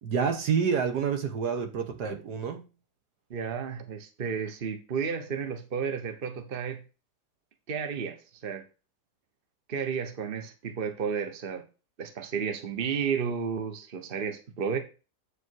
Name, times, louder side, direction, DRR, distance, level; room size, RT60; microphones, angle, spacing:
voice 1, 0.0-2.7, right 6 dB, 70° right, 1.7 m, -28 dB
voice 2, 3.3-6.8 7.7-8.7 9.7-11.7 12.0-14.8, right 6 dB, 35° right, 1.2 m, -32 dB
8.6 x 5.2 x 4.6 m
omnidirectional pair, 1.8 m